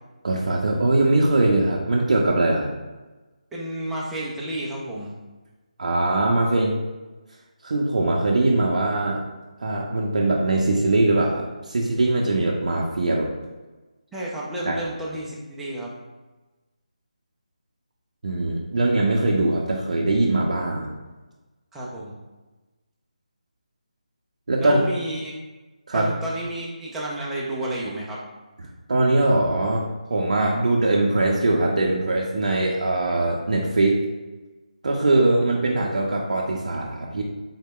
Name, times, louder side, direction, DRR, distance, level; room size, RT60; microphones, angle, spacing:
voice 1, 0.2-2.7 5.8-6.8 7.6-9.2 9.6-13.3 14.6-14.8 18.2-20.9 24.5-24.8 25.9-26.1 28.9-29.8 30.1-34.0 34.8-37.2, right 2 dB, 65° right, -2 dB, 0.5 m, -21 dB
voice 2, 3.5-5.2 14.1-15.9 21.7-22.1 24.6-25.3 25.9-28.2, right 1 dB, 5° right, -6 dB, 0.3 m, -31 dB
3.8 x 2.1 x 3.5 m, 1.2 s
figure-of-eight pair, 165°, 4 cm